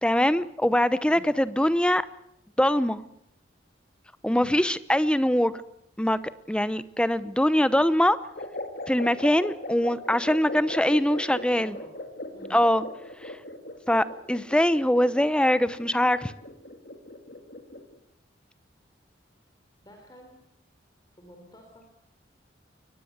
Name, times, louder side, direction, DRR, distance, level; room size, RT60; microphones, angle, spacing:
voice 1, 0.0-2.0 2.6-3.0 4.2-5.5 6.0-6.2 6.5-8.2 8.9-11.7 12.5-12.8 13.2-13.3 13.9-16.3, left 1 dB, 5° left, 15 dB, 0.8 m, -23 dB
voice 2, 4.3-4.6 10.7-11.9 12.3-12.6 19.8-20.4 21.2-21.9, equal, 20° left, 2 dB, 3.9 m, -49 dB
sound 1, 8.4-18.0, left 1 dB, 50° left, 2.4 m, -39 dB
22.5 x 20.0 x 8.1 m, 0.76 s
head